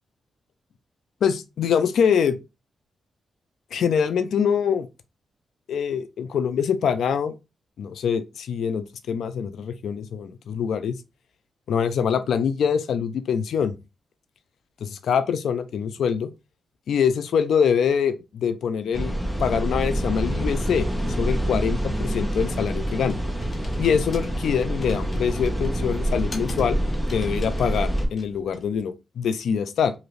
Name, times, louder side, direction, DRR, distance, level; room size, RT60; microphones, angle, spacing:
voice 1, 1.2-2.4 3.7-4.9 5.7-7.3 7.8-11.0 11.7-13.7 14.8-16.3 16.9-19.1 19.4-23.2 23.8-26.8 27.1-29.9, left 7 dB, 80° left, 0.4 m, -24 dB
sound 1, 18.9-28.1, right 1 dB, 5° right, 0.8 m, -26 dB
Computer keyboard, 21.8-28.8, left 2 dB, 40° left, 1.0 m, -44 dB
2.7 x 2.5 x 3.1 m
cardioid pair, 95°, 0 cm